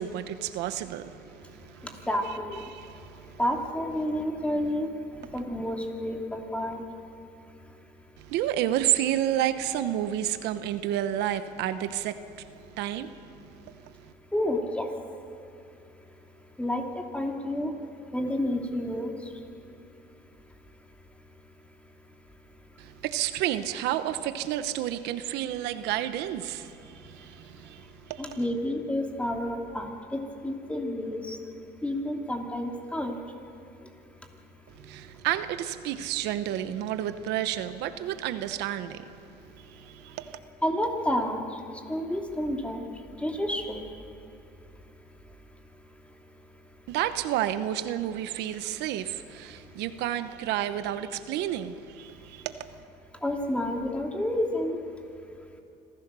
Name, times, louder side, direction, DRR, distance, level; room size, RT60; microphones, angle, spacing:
voice 1, 0.0-1.9 2.7-3.4 5.2-5.3 8.2-14.1 22.8-28.4 34.8-40.4 46.9-52.8, right 12 dB, 90° right, 1.0 m, -31 dB
voice 2, 2.1-2.6 3.4-4.9 5.3-6.8 14.3-14.9 16.6-17.7 18.1-19.1 28.2-31.4 31.8-33.2 40.6-41.4 41.9-42.8 43.2-43.8 53.2-54.8, left 1 dB, 5° left, 2.9 m, -29 dB
26.0 x 15.5 x 6.9 m
cardioid pair, 110°, 17 cm